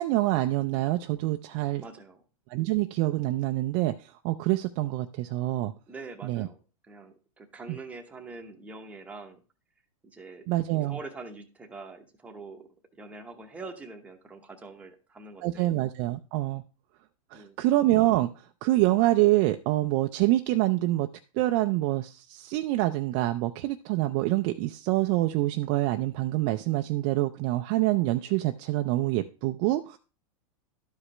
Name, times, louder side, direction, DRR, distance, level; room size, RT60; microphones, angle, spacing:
voice 1, 0.0-1.8 2.5-5.7 6.2-6.5 7.7-7.8 10.5-11.0 15.4-16.6 17.3-18.3 18.6-21.1 21.3-30.0, right 17 dB, 35° right, 7 dB, 0.4 m, -26 dB
voice 2, 1.8-2.2 5.9-6.6 6.8-9.4 10.0-10.5 10.9-15.7 17.3-17.6, right 3 dB, 5° right, 3 dB, 0.9 m, -44 dB
12.0 x 4.9 x 3.2 m, 0.33 s
supercardioid pair, 145°, 19 cm